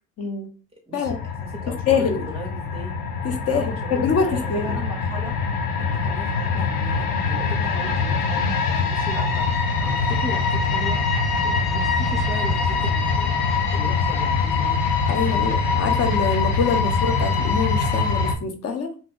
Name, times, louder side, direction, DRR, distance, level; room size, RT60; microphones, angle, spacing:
voice 1, 0.9-2.9 3.5-5.4 5.8-11.0 11.4-13.4 13.7-15.6, right 2 dB, 15° right, -1 dB, 0.6 m, -38 dB
sound 1, 1.0-18.3, left 4 dB, 80° left, 0.6 m, -23 dB
voice 2, 1.9-2.2 3.5-4.8 7.7-7.8 15.1-18.9, left 5 dB, 45° left, 5 dB, 0.8 m, -24 dB
2.5 x 2.2 x 3.6 m, 0.38 s
supercardioid pair, 70°, 34 cm